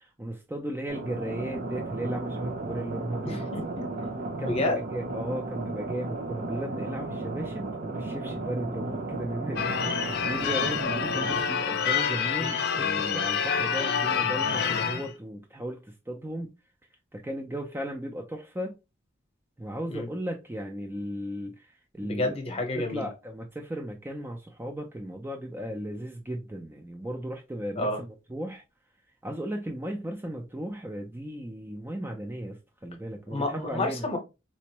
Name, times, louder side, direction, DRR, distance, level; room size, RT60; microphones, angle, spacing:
voice 1, 0.0-3.4 4.4-16.5 17.1-18.8 19.6-21.7 21.9-28.6 29.2-34.1, right 1 dB, 10° right, 0.4 m, -36 dB
sound 1, 0.9-11.4, right 2 dB, 50° right, 0.7 m, -34 dB
voice 2, 3.2-3.9 4.4-4.8 19.9-20.1 22.0-23.1 27.7-28.0 33.3-34.2, left 2 dB, 30° left, 0.8 m, -30 dB
Church bell / Car / Alarm, 9.6-15.1, left 7 dB, 55° left, 0.5 m, -27 dB
4.3 x 2.0 x 2.8 m
head